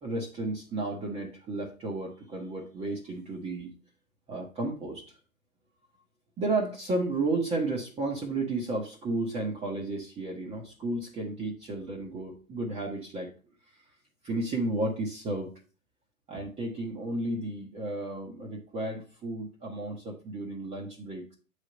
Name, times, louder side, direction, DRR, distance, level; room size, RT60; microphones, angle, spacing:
voice 1, 0.0-3.7 4.3-5.0 6.4-13.3 14.2-15.5 16.3-21.3, right 2 dB, 15° right, -2 dB, 0.9 m, -33 dB
7.4 x 3.4 x 5.1 m, 0.36 s
hypercardioid pair, 115°, 41 cm